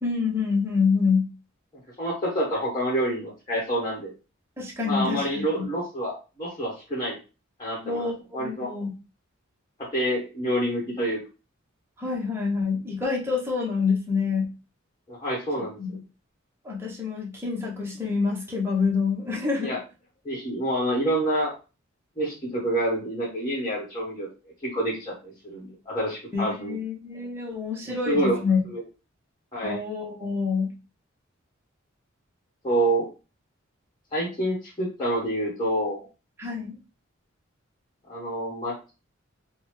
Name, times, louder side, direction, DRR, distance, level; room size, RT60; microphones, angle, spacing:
voice 1, 0.0-1.3 4.6-5.7 7.8-8.9 12.0-14.5 15.6-16.0 16.6-19.8 26.3-28.6 29.6-30.7 36.4-36.8, left 5 dB, 10° right, -3 dB, 0.9 m, -27 dB
voice 2, 2.0-4.1 4.8-7.2 7.6-8.1 8.3-8.7 9.9-11.2 15.1-15.8 19.6-19.8 20.2-21.5 22.2-24.3 24.6-26.8 27.9-28.4 28.6-28.8 29.5-29.8 32.6-33.1 34.1-36.1 38.1-38.9, right 1 dB, 20° left, -5 dB, 1.3 m, -27 dB
3.8 x 2.2 x 3.1 m, 0.31 s
head